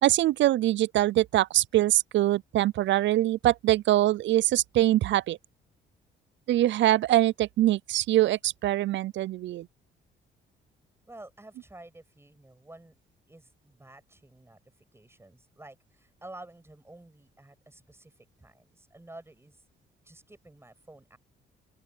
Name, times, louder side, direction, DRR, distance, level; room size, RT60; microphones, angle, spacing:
voice 1, 0.0-5.4 6.5-9.7, right 14 dB, 70° right, 0.5 m, -23 dB
voice 2, 11.1-13.0 13.3-14.6 14.9-19.6 20.0-21.2, right 2 dB, 10° right, 6.7 m, -50 dB
open air
cardioid pair, 90°, 20 cm